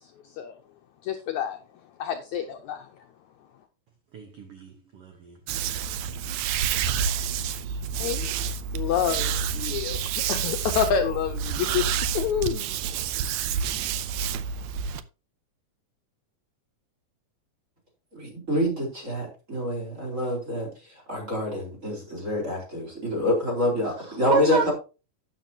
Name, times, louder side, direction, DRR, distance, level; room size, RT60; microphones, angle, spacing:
voice 1, 1.0-1.6 2.0-2.9 8.0-8.3 8.7-11.9 12.1-12.7, left 8 dB, 70° left, 1.8 m, -28 dB
voice 2, 4.1-5.3 24.3-24.7, right 5 dB, 65° right, 1.4 m, -29 dB
sound 1, 5.5-15.0, right 7 dB, 90° right, 1.6 m, -29 dB
voice 3, 18.1-24.7, left 1 dB, 20° right, 4.3 m, -27 dB
12.0 x 9.0 x 2.8 m
omnidirectional pair, 4.1 m